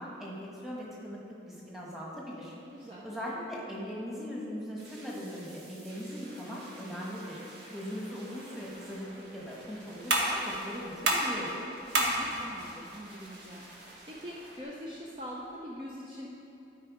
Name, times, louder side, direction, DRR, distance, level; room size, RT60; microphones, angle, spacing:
voice 1, 0.0-7.4 7.7-9.1 9.3-11.7, equal, ahead, -5 dB, 1.3 m, -40 dB
voice 2, 2.7-3.0 11.9-13.6 14.1-16.3, equal, 25° right, -4 dB, 0.6 m, -43 dB
sound 1, 4.8-14.6, right 1 dB, 70° right, 1.7 m, -52 dB
sound 2, 8.6-15.6, right 1 dB, 85° right, 1.3 m, -34 dB
12.0 x 4.6 x 4.9 m, 2.8 s
head